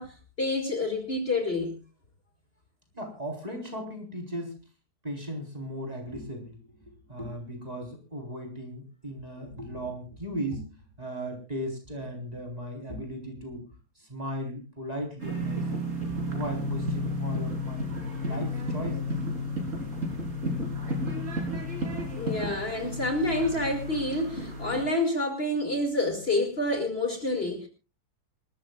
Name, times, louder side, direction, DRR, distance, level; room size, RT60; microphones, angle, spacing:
voice 1, 0.0-1.8 22.1-27.7, left 2 dB, 40° left, 5 dB, 2.4 m, -28 dB
voice 2, 2.9-4.6 5.0-13.7 14.0-15.7 16.3-17.9 18.2-19.1, equal, 25° right, 2 dB, 4.1 m, -37 dB
sound 1, 15.2-24.8, left 1 dB, 50° right, 4.0 m, -32 dB
27.0 x 13.0 x 2.3 m, 0.31 s
omnidirectional pair, 1.7 m